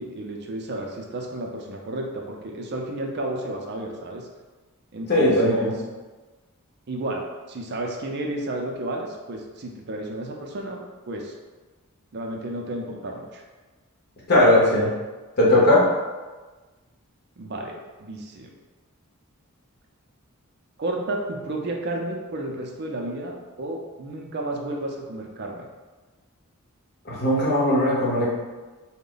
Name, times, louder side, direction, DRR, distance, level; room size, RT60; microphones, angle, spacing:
voice 1, 0.0-4.3 4.9-5.7 6.9-11.3 12.1-13.4 17.4-18.5 20.8-25.7, right 1 dB, 50° right, 1 dB, 0.5 m, -32 dB
voice 2, 5.1-5.8 14.3-14.9 15.4-15.8 27.0-28.3, left 1 dB, 45° left, -6 dB, 1.1 m, -18 dB
3.7 x 2.1 x 3.9 m, 1.3 s
head